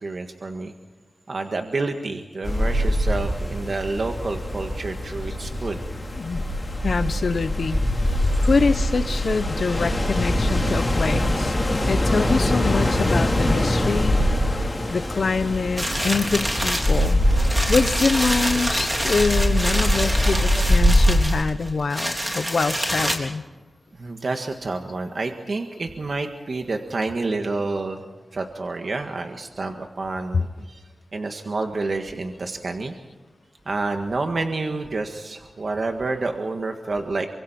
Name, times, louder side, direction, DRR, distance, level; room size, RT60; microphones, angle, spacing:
voice 1, 0.0-0.7 1.3-5.8 24.0-28.0 28.3-30.8 31.1-32.9 33.6-37.3, right 3 dB, 55° right, 4 dB, 1.7 m, -28 dB
sound 1, 2.4-21.2, left 1 dB, 25° left, 3.7 m, -23 dB
voice 2, 6.2-6.5 6.8-7.8 8.4-11.5 11.9-14.2 14.9-23.4, left 4 dB, 65° left, 12 dB, 1.0 m, -25 dB
sound 2, 15.8-23.2, equal, 15° right, 3.7 m, -26 dB
28.0 x 25.0 x 4.4 m, 1.2 s
wide cardioid pair, 105°, 0 cm